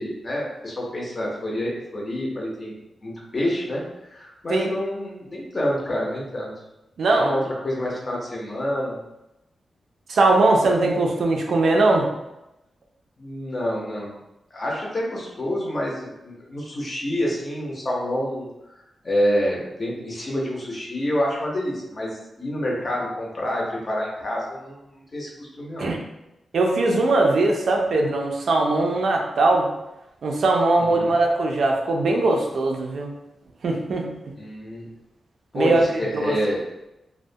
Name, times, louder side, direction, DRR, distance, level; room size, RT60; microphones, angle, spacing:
voice 1, 0.0-2.7 3.0-3.8 4.1-6.5 7.1-9.0 13.2-14.2 14.5-18.5 19.0-25.9 30.8-31.1 34.4-34.9 35.5-36.6, equal, 35° left, -3 dB, 0.6 m, -27 dB
voice 2, 7.0-7.3 10.1-12.0 25.8-26.0 26.5-29.7 30.2-33.1 33.6-34.1 35.5-35.8 36.1-36.4, right 2 dB, 70° right, 1 dB, 0.4 m, -20 dB
2.3 x 2.1 x 2.6 m, 0.92 s
wide cardioid pair, 150°, 0 cm